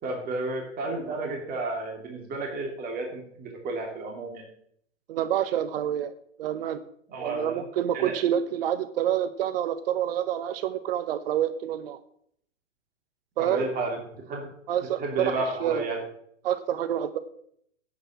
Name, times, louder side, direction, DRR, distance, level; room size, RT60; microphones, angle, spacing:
voice 1, 0.0-4.4 7.1-7.7 7.9-8.2 13.4-14.5 15.0-16.0, right 2 dB, 25° right, 0 dB, 2.9 m, -32 dB
voice 2, 5.1-6.8 7.2-12.0 13.4-13.7 14.7-15.3 15.6-15.9 16.4-17.2, right 10 dB, 50° right, 12 dB, 1.0 m, -27 dB
10.0 x 8.2 x 8.6 m, 0.68 s
figure-of-eight pair, 105°, 37 cm